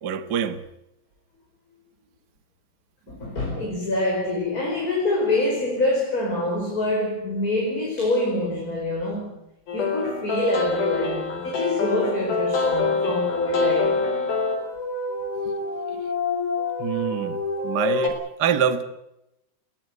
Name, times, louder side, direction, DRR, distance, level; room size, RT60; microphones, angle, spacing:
voice 1, 0.0-0.6 16.8-17.4 17.6-18.8, right 7 dB, 85° right, 0.9 m, -25 dB
voice 2, 3.1-9.4 9.7-14.0, left 2 dB, 20° left, 5.4 m, -25 dB
sound 1, 9.7-18.1, left 4 dB, 80° left, 6.0 m, -26 dB
21.0 x 17.5 x 9.5 m
omnidirectional pair, 4.3 m